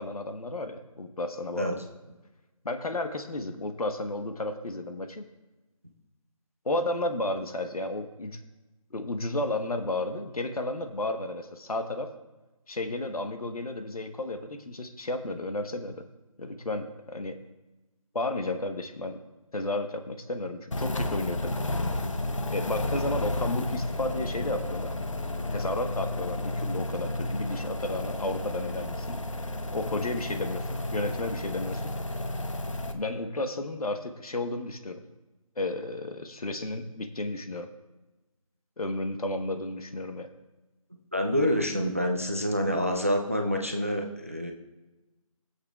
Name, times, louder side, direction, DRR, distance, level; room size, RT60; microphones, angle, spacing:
voice 1, 0.0-1.8 2.6-5.2 6.6-8.4 8.9-12.1 12.7-16.0 16.4-17.4 18.1-19.2 19.5-21.7 22.5-24.9 25.5-29.2 29.7-31.9 32.9-35.0 35.6-37.7 38.8-40.3, left 2 dB, 85° left, 6 dB, 1.1 m, -32 dB
sound 1, 20.7-32.9, left 1 dB, 60° left, 0.9 m, -32 dB
voice 2, 41.1-44.5, equal, 25° right, 3 dB, 0.5 m, -27 dB
17.0 x 8.0 x 2.4 m, 1.1 s
figure-of-eight pair, 180°, 18 cm